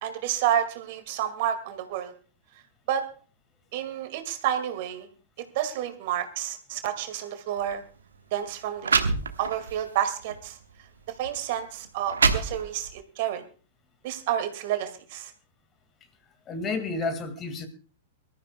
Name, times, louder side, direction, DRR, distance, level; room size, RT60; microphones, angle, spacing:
voice 1, 0.0-2.1 2.9-3.0 3.7-5.1 5.5-7.8 8.3-9.0 9.4-10.6 11.2-13.4 14.0-15.3, right 10 dB, 50° right, 2.2 m, -29 dB
sound 1, 7.6-7.8 8.5-8.6 8.8-9.7 10.3-10.5 11.2-11.3 11.8-13.0, right 5 dB, 75° right, 1.3 m, -25 dB
voice 2, 16.5-17.7, left 3 dB, 25° left, 2.0 m, -30 dB
24.0 x 13.5 x 2.3 m
figure-of-eight pair, 100°, 0 cm